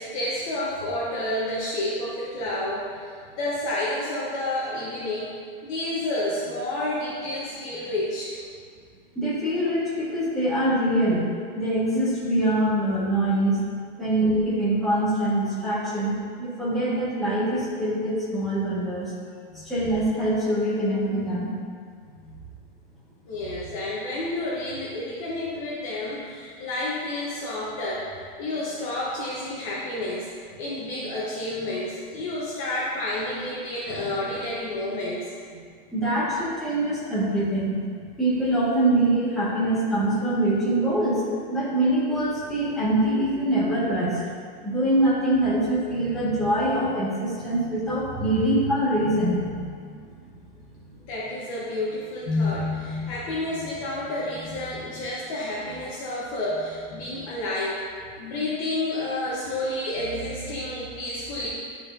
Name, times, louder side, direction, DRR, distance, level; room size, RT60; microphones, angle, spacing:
voice 1, 0.0-8.4 19.5-19.7 22.2-22.4 23.2-30.3 30.6-35.3 51.1-57.8 58.2-61.5, left 1 dB, 35° left, -7 dB, 1.0 m, -30 dB
voice 2, 9.2-13.6 14.0-19.1 19.7-21.5 34.0-34.1 35.9-41.2 41.5-44.2 44.6-49.6 49.9-50.0, right 1 dB, ahead, -13 dB, 1.6 m, -24 dB
11.0 x 4.3 x 2.7 m, 2.1 s
supercardioid pair, 175°, 29 cm